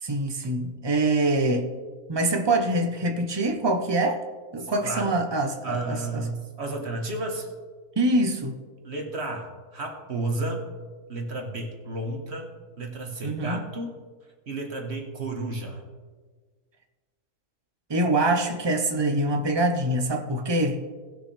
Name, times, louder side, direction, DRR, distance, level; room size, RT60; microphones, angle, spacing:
voice 1, 0.0-1.7 2.1-4.2 4.5-6.2 8.0-8.6 13.2-13.6 17.9-20.8, right 2 dB, 25° right, 5 dB, 0.5 m, -24 dB
voice 2, 4.6-5.2 5.6-7.5 8.8-10.7 11.1-12.5 12.8-14.0 14.5-15.8, right 2 dB, 45° right, 2 dB, 1.4 m, -32 dB
18.5 x 6.3 x 3.3 m, 1.5 s
omnidirectional pair, 1.7 m